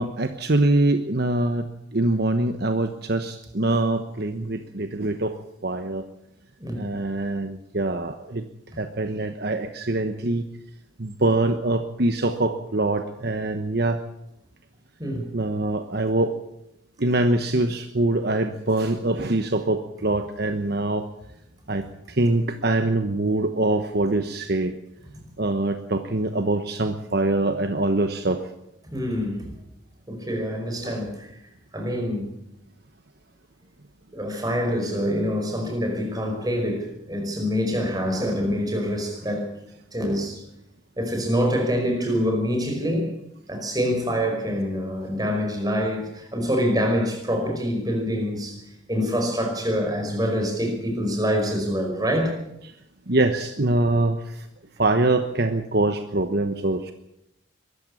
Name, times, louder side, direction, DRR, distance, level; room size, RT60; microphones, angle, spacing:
voice 1, 0.0-6.1 6.8-8.4 8.8-10.5 11.0-14.0 15.3-16.4 17.0-21.1 21.7-24.7 25.4-28.4 30.8-31.0 53.1-54.5 54.8-56.9, right 2 dB, 55° right, 8 dB, 1.2 m, -24 dB
voice 2, 28.9-29.5 30.1-31.3 31.7-32.3 34.1-39.5 39.9-40.4 41.0-43.1 43.5-48.6 48.9-52.3, equal, 20° right, 3 dB, 5.2 m, -25 dB
23.0 x 14.0 x 8.5 m, 0.81 s
head